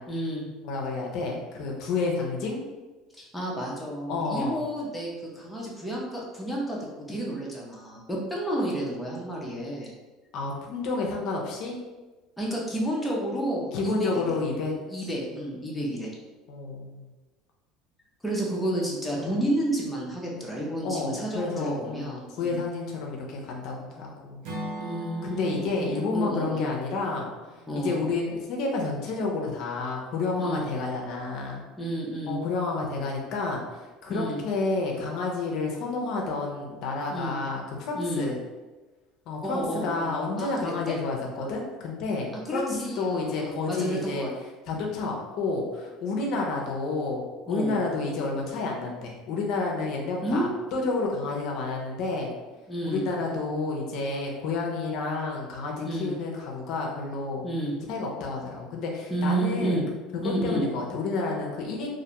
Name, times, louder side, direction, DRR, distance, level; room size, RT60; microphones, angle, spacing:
voice 1, 0.1-0.5 3.1-6.8 7.1-9.9 12.4-14.2 14.9-16.1 18.2-22.6 24.8-26.7 27.7-28.0 30.4-30.7 31.8-32.4 34.1-34.4 37.1-37.4 37.9-38.3 39.4-41.0 42.5-44.3 47.5-47.8 50.2-50.5 52.7-53.1 55.8-56.1 57.4-57.7 59.1-59.8 60.2-60.7, right 1 dB, 5° left, -4 dB, 0.5 m, -31 dB
voice 2, 0.6-2.6 4.1-4.7 10.3-11.8 13.7-14.8 16.5-17.1 19.1-19.4 20.8-24.4 25.2-27.3 27.7-31.6 32.3-38.4 39.3-44.3 44.7-52.3 52.8-57.4 57.9-59.8 60.2-62.0, left 3 dB, 60° left, 0 dB, 0.5 m, -30 dB
Acoustic guitar / Strum, 24.4-28.5, equal, 65° right, 0.6 m, -40 dB
2.4 x 2.1 x 2.8 m, 1.2 s
supercardioid pair, 130°, 0 cm